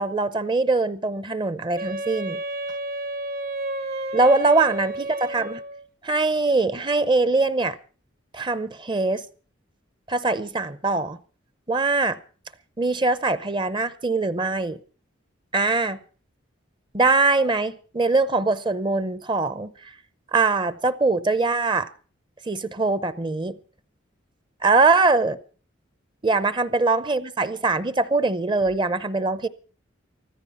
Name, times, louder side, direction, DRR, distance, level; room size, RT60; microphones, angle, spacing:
voice 1, 0.0-2.4 4.1-5.1 5.3-5.6 6.0-7.8 8.3-9.2 10.1-11.2 11.7-12.2 12.8-14.8 15.5-16.0 16.9-19.7 20.3-21.9 22.5-23.5 24.6-25.4 26.2-29.5, right 3 dB, 25° right, 0.7 m, -22 dB
Wind instrument woodwind instrument, 1.8-5.9, right 2 dB, 50° right, 1.1 m, -31 dB
14.5 x 14.0 x 5.6 m
head